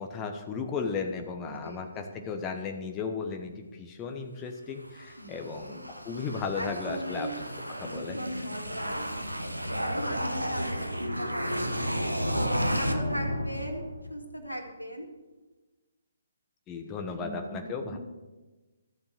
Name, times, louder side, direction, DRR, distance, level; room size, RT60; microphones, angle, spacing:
voice 1, 0.0-7.3 7.8-8.2 16.7-18.0, left 5 dB, 20° left, 4 dB, 1.1 m, -35 dB
voice 2, 1.4-2.2 5.2-5.8 6.5-7.3 7.8-9.0 9.6-11.7 12.3-15.1 16.8-18.0, equal, 85° left, 3 dB, 2.4 m, -38 dB
sound 1, 4.8-14.2, equal, 90° right, 1.3 m, -32 dB
13.5 x 7.0 x 6.6 m, 1.2 s
figure-of-eight pair, 135°, 0 cm